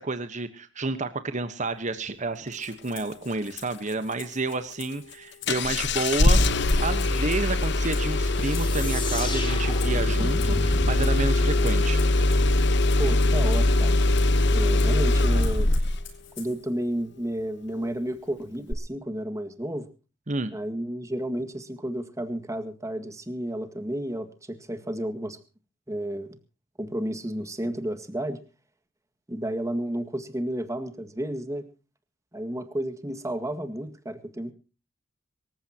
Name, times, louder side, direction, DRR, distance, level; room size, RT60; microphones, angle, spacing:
voice 1, 0.0-12.0 20.3-20.5, right 3 dB, 40° right, 10 dB, 1.2 m, -30 dB
Rattle (instrument), 2.5-16.7, left 9 dB, 90° left, 6.4 m, -47 dB
Engine starting, 5.5-16.1 18.7-18.8, left 2 dB, 65° left, 1.2 m, -22 dB
sound 1, 8.4-12.9, left 2 dB, 25° left, 4.7 m, -35 dB
voice 2, 13.0-14.0 14.5-15.7 16.4-19.9 20.5-25.4 25.9-26.4 26.8-28.4 29.3-31.7 32.3-34.5, right 1 dB, 15° right, 7 dB, 1.9 m, -32 dB
26.5 x 15.0 x 2.9 m, 0.34 s
head